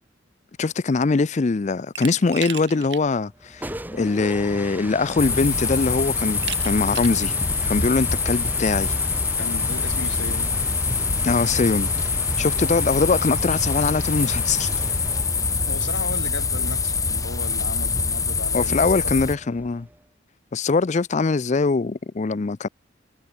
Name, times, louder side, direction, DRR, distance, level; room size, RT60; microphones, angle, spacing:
voice 1, 0.6-7.3 7.6-8.9 11.2-12.1 12.4-14.7 18.5-19.9 20.5-22.7, left 4 dB, 40° left, 0.5 m, -22 dB
Glass, 1.9-3.0 3.4-3.5 4.7-4.8 5.2-5.6 6.4-7.2, right 11 dB, 65° right, 1.4 m, -35 dB
sound 1, 3.3-20.0, right 1 dB, 10° right, 5.0 m, -38 dB
sound 2, 5.2-19.4, left 4 dB, 20° left, 2.2 m, -24 dB
voice 2, 9.4-10.5 15.6-19.2, left 2 dB, 80° left, 3.2 m, -35 dB
head